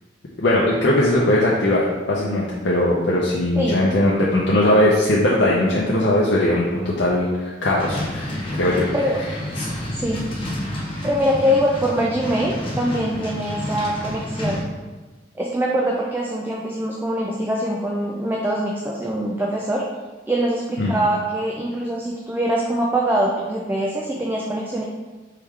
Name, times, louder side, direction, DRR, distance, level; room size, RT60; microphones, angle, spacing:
voice 1, 0.4-8.9 9.6-9.8 20.8-21.0, left 1 dB, 75° left, -5 dB, 0.6 m, -19 dB
sound 1, 7.8-14.6, left 1 dB, 30° left, 0.8 m, -30 dB
voice 2, 9.9-10.2 11.0-14.7 15.4-19.8 20.3-24.8, equal, 10° right, -2 dB, 0.4 m, -23 dB
4.6 x 3.2 x 3.6 m, 1.3 s
head